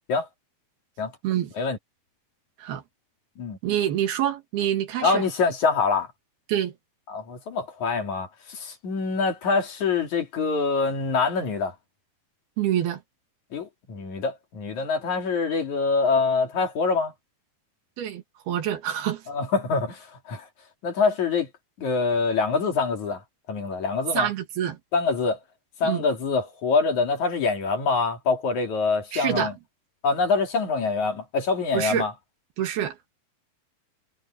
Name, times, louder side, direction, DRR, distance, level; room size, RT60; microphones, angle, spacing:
voice 1, 3.6-5.2 6.5-6.7 12.6-13.0 18.0-19.2 24.1-24.8 25.8-26.0 29.1-29.5 31.7-32.1 32.6-33.0, right 11 dB, 80° right, 3.9 m, -26 dB
voice 2, 5.0-6.1 7.1-11.8 13.5-17.1 19.3-20.5 20.8-21.5 21.8-23.2 23.5-24.3 24.9-25.4 25.8-29.5 30.0-32.1, left 4 dB, 50° left, 4.0 m, -25 dB
omnidirectional pair, 4.4 m